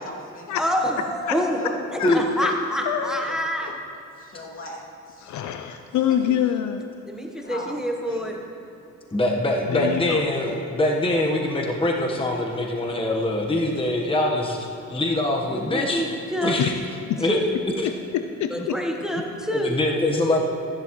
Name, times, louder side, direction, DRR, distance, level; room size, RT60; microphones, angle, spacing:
voice 1, 0.0-0.9 1.3-2.1 2.5-2.6 2.9-3.8 4.2-5.3 6.1-6.2 7.4-8.4, left 1 dB, 45° left, -3 dB, 2.6 m, -40 dB
voice 2, 0.5-3.7 7.0-8.4 15.5-16.5 17.2-17.5 17.8-17.9 18.5-20.4, equal, ahead, 1 dB, 1.1 m, -27 dB
voice 3, 2.9-3.4 5.2-6.9 9.7-10.2 16.6-16.8 17.1-17.2 17.8-18.8, left 10 dB, 70° left, 8 dB, 0.6 m, -26 dB
voice 4, 9.1-14.6 14.9-16.0 16.4-16.7 17.2-17.4 19.5-20.4, left 1 dB, 20° left, 0 dB, 1.2 m, -23 dB
14.5 x 11.0 x 3.1 m, 2.8 s
cardioid pair, 90°, 30 cm